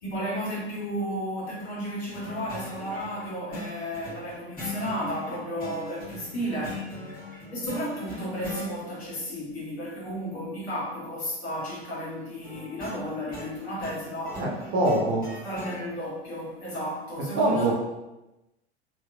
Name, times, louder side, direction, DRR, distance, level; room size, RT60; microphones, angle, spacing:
voice 1, 0.0-6.9 7.5-14.7 15.4-17.7, equal, 70° left, -6 dB, 1.3 m, -33 dB
sound 1, 2.1-8.7 12.4-15.8, left 2 dB, 25° left, 1.3 m, -40 dB
voice 2, 14.4-15.3 17.4-17.7, right 2 dB, 40° right, -3 dB, 0.9 m, -24 dB
2.9 x 2.8 x 2.4 m, 0.99 s
figure-of-eight pair, 80°, 33 cm